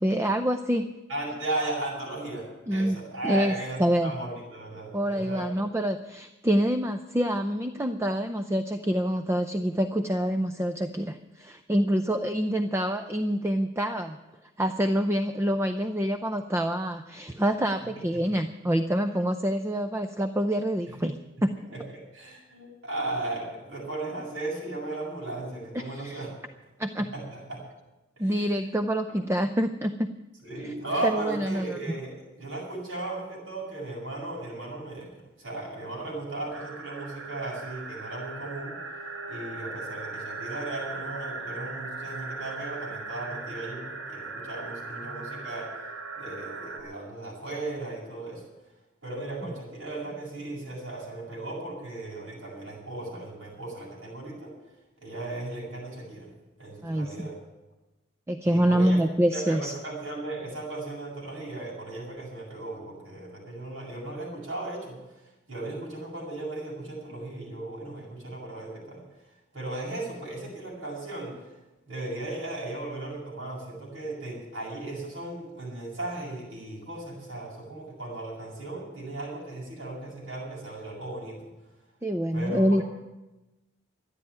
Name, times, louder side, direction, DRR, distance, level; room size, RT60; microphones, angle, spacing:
voice 1, 0.0-0.9 2.7-3.0 3.2-3.5 3.8-4.1 4.9-14.2 14.6-21.1 21.4-21.5 25.7-26.2 26.8-27.1 28.2-30.1 30.6-30.7 31.0-31.8 56.8-57.3 58.3-59.7 82.0-82.8, equal, 15° right, 8 dB, 0.5 m, -26 dB
voice 2, 1.1-5.6 17.8-17.9 18.1-18.2 21.7-26.3 27.1-27.7 28.2-28.5 30.4-38.8 39.3-45.7 46.1-48.4 49.0-54.5 55.0-56.3 56.6-57.4 58.4-59.0 59.3-65.0 65.5-69.0 69.5-71.3 71.9-81.5 82.3-82.8, right 2 dB, 65° right, -4 dB, 7.5 m, -36 dB
sound 1, 36.5-46.8, right 3 dB, 90° right, 3.6 m, -38 dB
13.0 x 9.8 x 9.6 m, 1.1 s
head